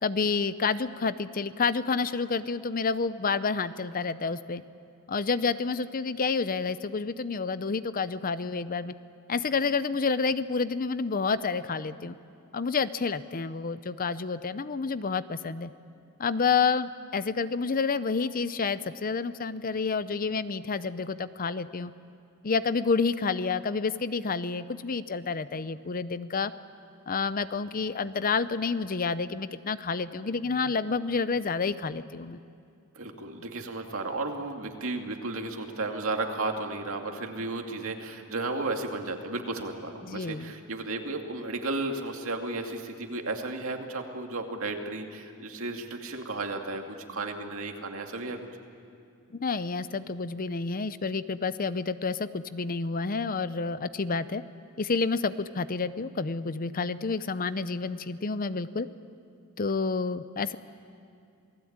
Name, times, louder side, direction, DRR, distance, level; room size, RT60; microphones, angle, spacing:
voice 1, 0.0-4.6 5.1-8.9 9.3-12.2 12.5-15.7 16.2-21.9 22.4-26.5 27.1-32.4 40.0-40.5 49.3-54.4 54.8-58.9 59.6-60.6, left 4 dB, 40° left, 14 dB, 0.6 m, -29 dB
voice 2, 32.9-48.4, right 2 dB, 65° right, 3 dB, 2.5 m, -34 dB
28.0 x 19.5 x 8.8 m, 2.5 s
head